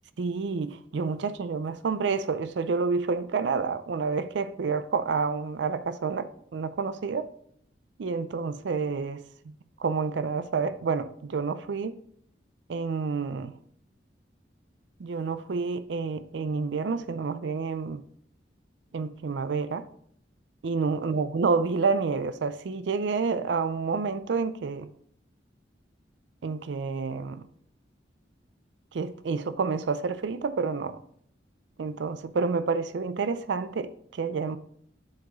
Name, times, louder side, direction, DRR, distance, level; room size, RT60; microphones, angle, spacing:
voice 1, 0.2-7.3 8.0-12.0 12.7-13.6 15.0-18.0 18.9-19.9 20.6-24.9 26.4-27.4 28.9-31.0 31.8-34.6, right 4 dB, 80° right, 0.4 m, -29 dB
8.4 x 4.7 x 3.9 m
head